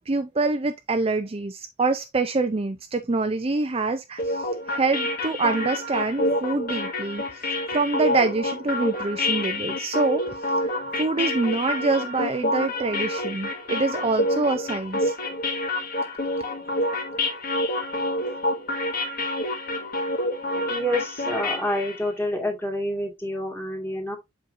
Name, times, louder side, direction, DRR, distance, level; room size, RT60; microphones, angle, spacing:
voice 1, 0.1-7.2 7.7-10.2 10.6-15.2, right 3 dB, 30° right, 0.5 m, -26 dB
sound 1, 4.2-22.0, left 1 dB, 50° left, 1.6 m, -28 dB
voice 2, 20.7-24.2, left 1 dB, 10° left, 2.1 m, -28 dB
7.7 x 5.2 x 2.6 m
head